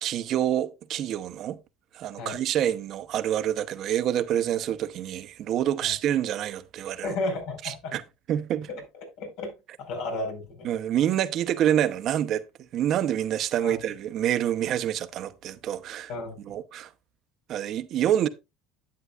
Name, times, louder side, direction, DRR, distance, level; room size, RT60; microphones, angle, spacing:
voice 1, 0.0-1.6 1.9-7.1 7.6-8.0 8.3-8.7 10.6-12.4 12.7-16.1 16.5-16.9 17.5-18.3, right 11 dB, 50° right, 0.9 m, -27 dB
voice 2, 7.0-8.0 8.7-9.5 9.8-10.7 13.6-13.8 16.1-16.6, left 2 dB, 70° left, 4.7 m, -33 dB
11.0 x 9.0 x 2.4 m
supercardioid pair, 105°, 0 cm